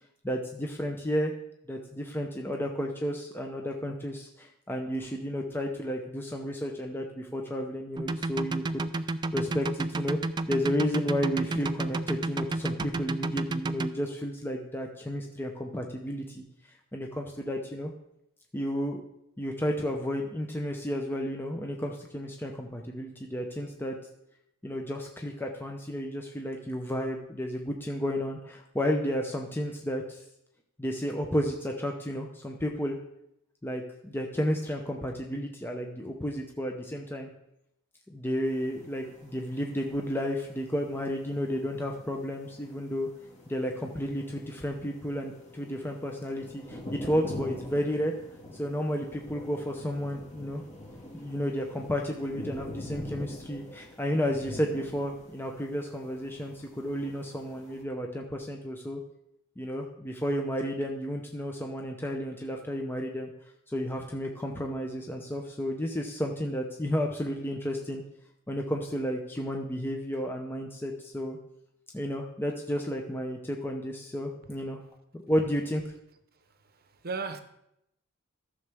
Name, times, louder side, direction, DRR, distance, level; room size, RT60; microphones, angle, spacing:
voice 1, 0.2-1.3 1.7-8.9 9.3-10.2 10.5-16.4 16.9-17.9 18.5-19.0 19.4-23.9 24.6-30.2 30.8-33.0 33.6-37.3 38.1-43.1 43.5-48.1 48.6-50.6 51.1-59.0 59.6-63.3 63.7-68.0 68.5-71.4 71.9-74.8 75.1-75.9, equal, 10° left, 0.7 m, -32 dB
sound 1, 8.0-13.9, right 2 dB, 20° right, 0.3 m, -30 dB
sound 2, 38.4-57.8, left 1 dB, 35° left, 2.0 m, -45 dB
voice 2, 76.7-77.4, right 4 dB, 50° right, 0.8 m, -36 dB
14.0 x 6.7 x 3.5 m
head